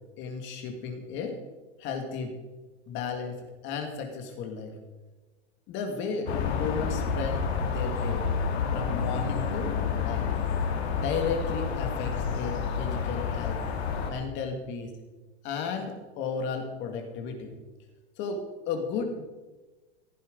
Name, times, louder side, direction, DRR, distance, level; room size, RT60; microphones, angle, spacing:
voice 1, 0.2-1.4 1.8-2.4 2.9-4.7 5.7-6.3 6.6-7.5 7.7-8.3 8.7-10.3 10.9-13.6 14.1-14.9 15.4-17.5 18.2-19.2, left 5 dB, 35° left, 4 dB, 2.1 m, -34 dB
sound 1, 6.3-14.1, left 6 dB, 60° left, 2.4 m, -29 dB
15.0 x 9.2 x 5.2 m, 1.2 s
supercardioid pair, 150°, 35 cm